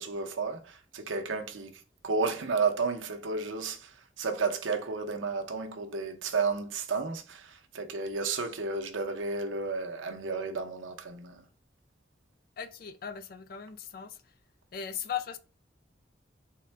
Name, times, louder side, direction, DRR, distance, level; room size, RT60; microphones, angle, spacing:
voice 1, 0.0-11.4, right 4 dB, 90° right, 0.7 m, -32 dB
voice 2, 12.6-14.2 14.7-15.4, left 8 dB, 50° left, 0.4 m, -38 dB
3.7 x 2.1 x 4.3 m
head